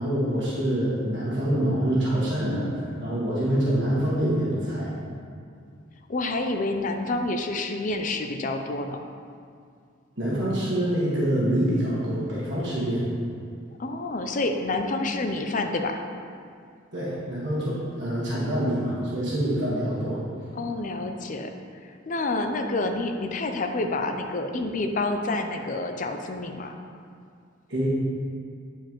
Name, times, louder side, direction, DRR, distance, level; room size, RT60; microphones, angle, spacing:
voice 1, 0.0-4.9 10.2-13.1 16.9-20.2 27.7-27.9, right 1 dB, 60° right, -8 dB, 1.6 m, -26 dB
voice 2, 6.1-9.0 13.8-16.0 20.6-21.5 21.8-26.8, left 2 dB, 40° left, 5 dB, 0.5 m, -28 dB
9.2 x 4.5 x 3.1 m, 2.3 s
head